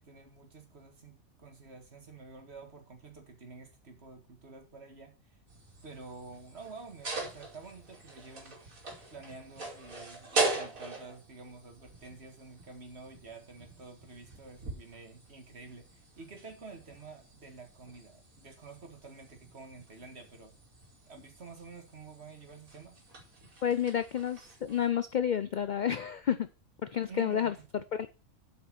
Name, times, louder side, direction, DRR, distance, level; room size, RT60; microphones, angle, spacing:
voice 1, 0.0-5.4 5.8-8.6 9.1-20.6 21.1-23.0 27.1-27.6, right 4 dB, 50° right, 5 dB, 2.1 m, -49 dB
sound 1, 5.5-24.9, right 3 dB, 90° right, 3.1 m, -41 dB
voice 2, 23.6-26.5 26.8-27.5 27.9-28.1, left 9 dB, 70° left, 13 dB, 0.4 m, -30 dB
8.2 x 5.4 x 6.1 m, 0.31 s
omnidirectional pair, 1.4 m